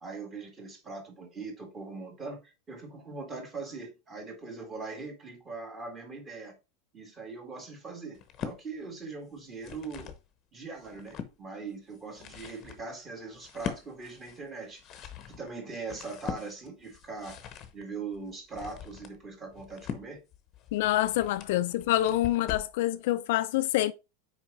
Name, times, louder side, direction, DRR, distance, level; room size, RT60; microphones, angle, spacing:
voice 1, 0.0-6.6 6.9-10.1 10.5-17.4 17.7-20.2, right 4 dB, 15° right, 1.9 m, -41 dB
sound 1, 8.1-8.6 9.4-10.2 10.7-11.3 11.9-22.8, left 8 dB, 25° left, 1.0 m, -42 dB
voice 2, 20.7-23.9, left 14 dB, 60° left, 0.5 m, -26 dB
6.2 x 4.9 x 5.1 m
supercardioid pair, 180°, 0 cm